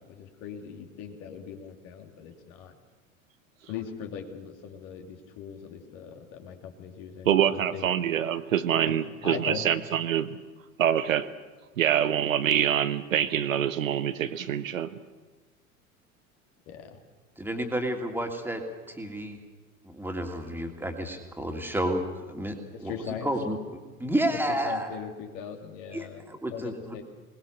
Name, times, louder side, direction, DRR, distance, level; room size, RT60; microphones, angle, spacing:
voice 1, 0.0-2.8 3.7-7.9 8.9-9.0 9.2-9.7 16.7-17.0 22.7-23.3 24.5-26.2 26.5-27.0, left 8 dB, 45° left, 4 dB, 2.8 m, -40 dB
voice 2, 7.3-10.4 10.8-11.3 11.8-15.0, right 9 dB, 70° right, 13 dB, 1.0 m, -25 dB
voice 3, 17.4-18.6 18.9-19.4 19.8-22.5 22.8-22.9 23.2-23.6 24.0-24.9 25.9-26.9, right 1 dB, 5° right, 3 dB, 2.8 m, -30 dB
26.0 x 19.5 x 6.7 m, 1.3 s
figure-of-eight pair, 75°, 42 cm